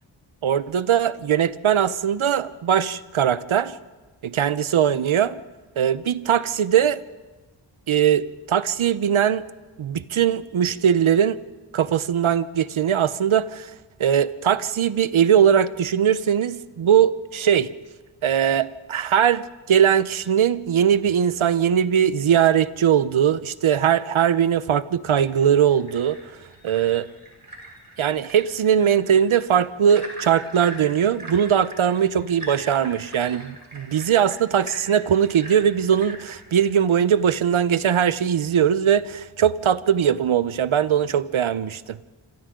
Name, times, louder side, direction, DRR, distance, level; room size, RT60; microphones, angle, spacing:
voice 1, 0.4-3.8 4.4-5.4 5.8-7.0 7.9-9.4 9.8-11.4 11.7-13.7 14.0-17.7 18.2-26.2 26.6-27.1 28.0-42.0, right 9 dB, 75° right, 15 dB, 0.9 m, -20 dB
sound 1, 25.2-36.8, right 1 dB, 45° right, 6.2 m, -42 dB
27.0 x 27.0 x 3.8 m, 1.2 s
wide cardioid pair, 105°, 49 cm